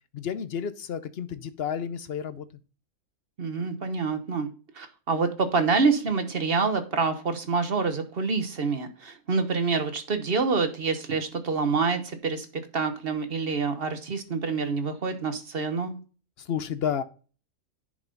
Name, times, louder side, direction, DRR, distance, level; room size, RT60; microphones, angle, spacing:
voice 1, 0.1-2.4 16.4-17.0, left 8 dB, 55° left, 13 dB, 0.8 m, -31 dB
voice 2, 3.4-4.5 4.7-12.5 12.7-16.0, right 4 dB, 45° right, 8 dB, 1.2 m, -27 dB
10.5 x 5.1 x 3.9 m, 0.36 s
omnidirectional pair, 1.5 m